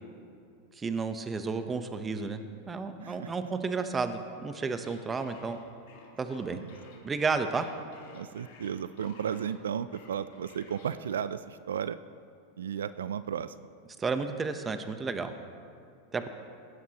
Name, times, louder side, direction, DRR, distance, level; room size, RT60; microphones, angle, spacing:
voice 1, 0.7-2.4 2.7-5.6 6.2-6.6 7.0-7.6 14.0-15.3 16.1-16.3, right 4 dB, 20° right, 8 dB, 0.8 m, -32 dB
sound 1, 4.8-9.6 9.9-10.9, left 4 dB, 70° left, 2.6 m, -54 dB
voice 2, 6.5-7.0 8.1-12.0 12.6-13.7, right 8 dB, 90° right, 14 dB, 0.3 m, -34 dB
17.0 x 11.0 x 2.9 m, 2.3 s
hypercardioid pair, 110°, 0 cm